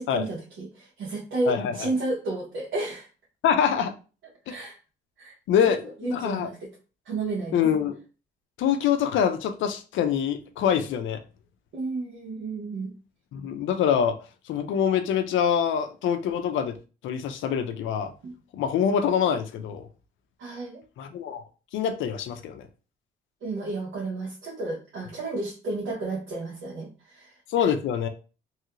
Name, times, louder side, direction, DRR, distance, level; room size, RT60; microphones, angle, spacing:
voice 1, 0.0-3.1 4.5-4.8 5.2-5.3 6.0-6.6 7.0-7.6 11.7-12.9 18.2-18.3 20.4-20.8 23.4-27.3, right 2 dB, 70° right, 1.3 m, -32 dB
voice 2, 1.5-1.9 3.4-3.9 4.5-4.6 5.5-6.5 7.5-8.0 8.6-11.2 13.3-14.2 14.5-16.8 17.0-18.1 18.5-19.9 21.0-21.4 21.7-22.7 27.5-28.1, left 8 dB, 75° left, 0.5 m, -25 dB
3.1 x 2.8 x 2.5 m
cardioid pair, 90°, 20 cm